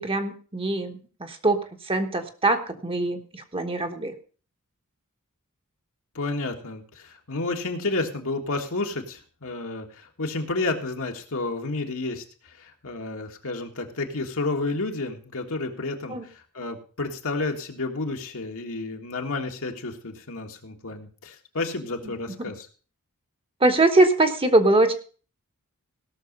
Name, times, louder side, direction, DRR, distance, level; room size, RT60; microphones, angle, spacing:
voice 1, 0.0-1.6 1.9-4.1 16.1-16.2 22.4-22.5 23.6-24.9, right 2 dB, 25° right, 6 dB, 1.2 m, -22 dB
voice 2, 6.2-22.7, left 3 dB, 65° left, 3 dB, 1.7 m, -31 dB
17.0 x 6.4 x 5.3 m, 0.39 s
head